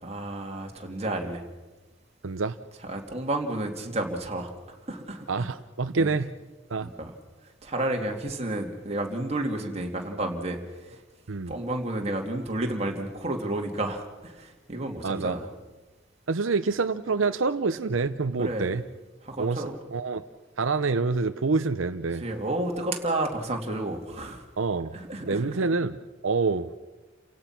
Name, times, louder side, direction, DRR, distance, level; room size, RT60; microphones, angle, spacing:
voice 1, 0.0-1.4 2.8-5.5 5.9-6.1 6.8-7.1 7.6-11.0 11.5-15.5 18.4-18.8 19.2-19.8 22.1-24.4 24.9-25.5, right 1 dB, 35° right, 2 dB, 2.6 m, -31 dB
voice 2, 2.2-2.6 5.3-6.3 6.7-6.9 11.3-11.5 15.0-15.4 16.3-18.8 19.4-19.6 19.9-20.2 20.6-22.2 24.6-24.9 25.2-26.7, right 4 dB, 85° right, 10 dB, 0.7 m, -26 dB
30.0 x 17.0 x 6.0 m, 1.2 s
head